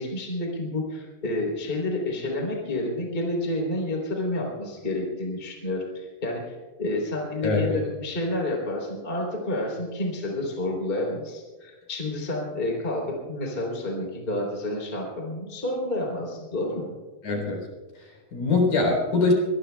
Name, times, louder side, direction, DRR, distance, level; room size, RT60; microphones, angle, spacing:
voice 1, 0.0-16.9, left 1 dB, 15° left, 0 dB, 3.3 m, -29 dB
voice 2, 7.4-7.8 17.2-17.7 18.0-19.3, left 3 dB, 55° left, 0 dB, 5.3 m, -23 dB
24.5 x 20.5 x 2.3 m, 1.3 s
omnidirectional pair, 4.6 m